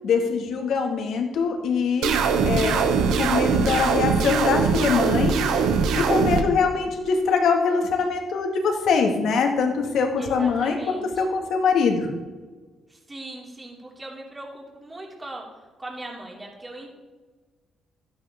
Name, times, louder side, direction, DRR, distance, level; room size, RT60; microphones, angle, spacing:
voice 1, 0.0-2.2 2.5-5.4 6.0-12.1, left 5 dB, 75° left, 3 dB, 1.9 m, -23 dB
sound 1, 2.0-6.4, right 5 dB, 85° right, 1.0 m, -22 dB
voice 2, 10.2-11.2 12.9-15.4 15.8-16.9, right 2 dB, 20° right, -2 dB, 3.0 m, -39 dB
12.5 x 10.5 x 3.7 m, 1.3 s
cardioid pair, 90°, 0 cm